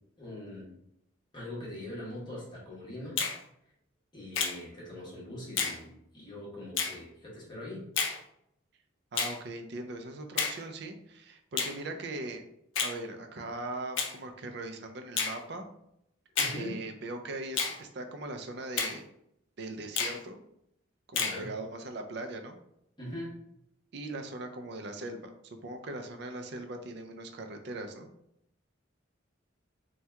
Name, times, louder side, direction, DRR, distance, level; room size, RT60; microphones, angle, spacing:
voice 1, 0.2-0.7 1.3-3.2 4.1-7.8 16.4-16.8 21.1-21.5 23.0-23.4, left 1 dB, 25° left, -6 dB, 1.1 m, -42 dB
Finger snapping, 3.2-3.4 4.3-4.6 5.6-5.8 6.8-7.0 8.0-8.2 9.2-9.4 10.4-10.6 11.6-11.8 12.7-13.0 14.0-14.1 15.2-15.4 16.4-16.6 17.6-17.8 18.8-19.0 20.0-20.2 21.2-21.4, left 5 dB, 80° left, 0.5 m, -30 dB
voice 2, 9.1-12.4 12.8-15.7 16.5-19.0 19.6-20.4 21.1-22.6 23.9-28.1, right 2 dB, 60° right, 6 dB, 0.4 m, -40 dB
2.8 x 2.2 x 3.3 m, 0.77 s
head